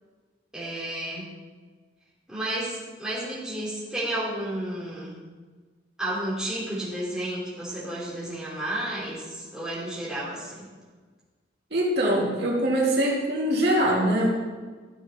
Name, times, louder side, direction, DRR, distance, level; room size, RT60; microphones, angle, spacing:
voice 1, 0.5-1.3 2.3-5.1 6.0-10.6, right 1 dB, 5° right, -9 dB, 3.4 m, -32 dB
voice 2, 11.7-14.3, right 1 dB, 65° right, -4 dB, 2.5 m, -23 dB
13.0 x 7.5 x 4.4 m, 1.4 s
head